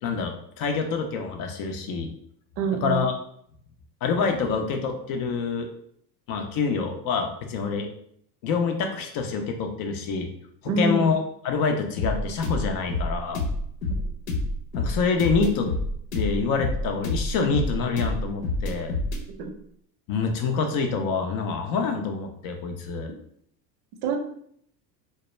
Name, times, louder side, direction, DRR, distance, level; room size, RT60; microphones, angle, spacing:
voice 1, 0.0-2.1 2.8-3.1 4.0-5.7 6.3-7.9 8.4-10.3 10.8-13.4 14.7-15.7 16.1-18.9 20.1-23.1, left 5 dB, 45° left, 5 dB, 0.5 m, -26 dB
voice 2, 2.6-3.1 10.7-11.1 14.0-14.1 19.4-19.5 24.0-24.2, right 4 dB, 55° right, 3 dB, 0.6 m, -26 dB
sound 1, 12.0-19.2, left 2 dB, 75° left, 0.8 m, -28 dB
2.1 x 2.1 x 3.0 m, 0.67 s
hypercardioid pair, 85°, 50 cm